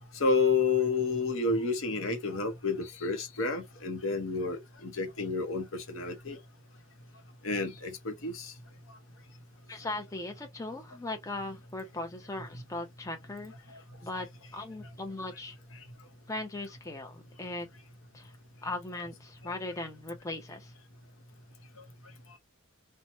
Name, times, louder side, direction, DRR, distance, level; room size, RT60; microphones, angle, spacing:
voice 1, 0.2-6.4 7.4-8.5, left 4 dB, 65° left, 0.8 m, -30 dB
voice 2, 9.7-14.3 14.5-15.6 16.3-17.7 18.1-18.3 18.6-20.7, left 2 dB, 15° left, 0.6 m, -39 dB
2.9 x 2.2 x 2.9 m
head